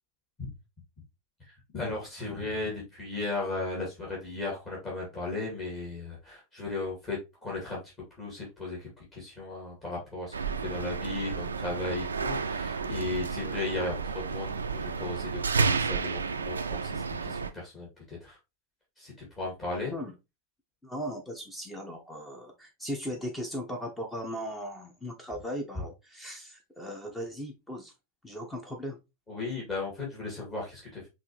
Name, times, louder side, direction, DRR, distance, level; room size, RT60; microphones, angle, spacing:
voice 1, 1.4-7.8 8.2-18.4 19.0-19.9 29.3-31.1, left 3 dB, 25° left, -5 dB, 2.3 m, -36 dB
sound 1, 10.3-17.5, right 4 dB, 75° right, 0.4 m, -31 dB
voice 2, 20.8-27.9 28.2-29.0, equal, 10° left, 2 dB, 0.9 m, -38 dB
5.8 x 2.7 x 3.0 m, 0.25 s
figure-of-eight pair, 90°, 0 cm